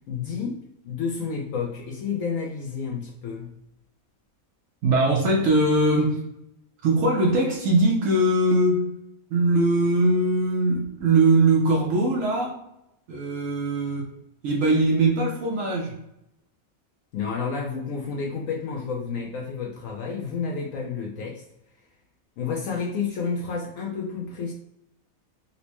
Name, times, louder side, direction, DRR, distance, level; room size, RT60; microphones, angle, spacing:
voice 1, 0.1-3.5 17.1-21.4 22.4-24.5, left 5 dB, 70° left, -1 dB, 0.9 m, -30 dB
voice 2, 4.8-6.2 6.8-8.9 9.3-12.6 13.1-14.1 14.4-15.9, right 2 dB, 65° right, -1 dB, 1.0 m, -21 dB
4.2 x 2.1 x 2.9 m, 0.84 s
omnidirectional pair, 1.5 m